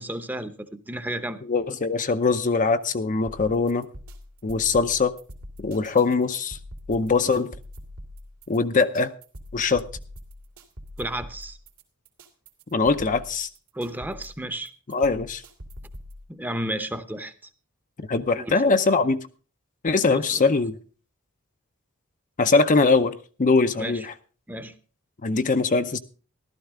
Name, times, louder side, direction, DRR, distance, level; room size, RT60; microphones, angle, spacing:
voice 1, 0.0-1.4 11.0-11.6 13.7-14.7 16.3-17.3 18.3-18.8 20.1-20.4 23.8-24.1 24.5-24.7, right 1 dB, 10° right, 10 dB, 0.8 m, -32 dB
voice 2, 1.4-3.9 4.4-5.1 5.6-6.6 6.9-7.5 8.5-9.1 9.5-9.9 12.7-13.5 14.9-15.4 18.1-19.2 19.8-20.7 22.4-24.1 25.2-26.0, left 4 dB, 35° left, 9 dB, 0.6 m, -22 dB
sound 1, 3.3-16.2, equal, 80° right, 2.7 m, -43 dB
14.5 x 12.5 x 3.7 m, 0.38 s
head